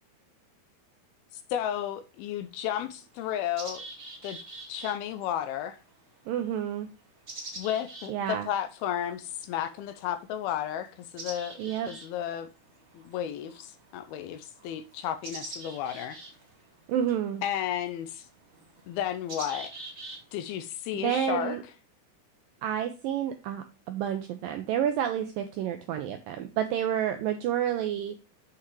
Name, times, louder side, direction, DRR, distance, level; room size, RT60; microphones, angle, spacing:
sound 1, 1.4-1.5 2.3-2.4 2.8-20.5, right 2 dB, 35° right, 1.1 m, -46 dB
voice 1, 1.5-3.8 4.2-4.4 4.7-5.8 7.6-11.6 11.9-12.5 12.9-16.2 17.4-18.3 18.9-19.7 20.3-21.6, left 10 dB, 80° left, 2.3 m, -33 dB
voice 2, 6.3-6.9 8.1-8.5 11.6-11.9 16.9-17.4 21.0-21.6 22.6-28.1, right 10 dB, 80° right, 2.0 m, -29 dB
7.9 x 5.8 x 3.1 m
omnidirectional pair, 4.8 m